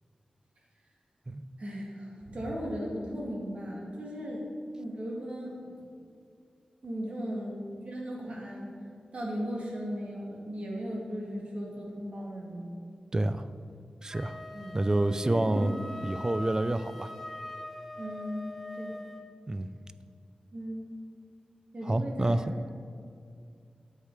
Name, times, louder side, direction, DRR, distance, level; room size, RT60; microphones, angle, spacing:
voice 1, 1.6-4.5 4.8-5.8 6.8-7.6 7.8-8.7 9.1-12.7 14.5-14.8 15.2-15.7 18.0-19.0 20.5-20.8 21.7-22.5, equal, 55° right, -3 dB, 2.4 m, -37 dB
voice 2, 13.1-13.5 14.0-14.4 14.7-15.7 16.0-17.1 19.5-19.7 21.8-22.5, right 1 dB, 25° right, 12 dB, 0.4 m, -28 dB
Wind instrument woodwind instrument, 14.1-19.3, left 1 dB, 5° left, 1.0 m, -42 dB
10.0 x 7.4 x 4.9 m, 2.4 s
wide cardioid pair, 90°, 3 cm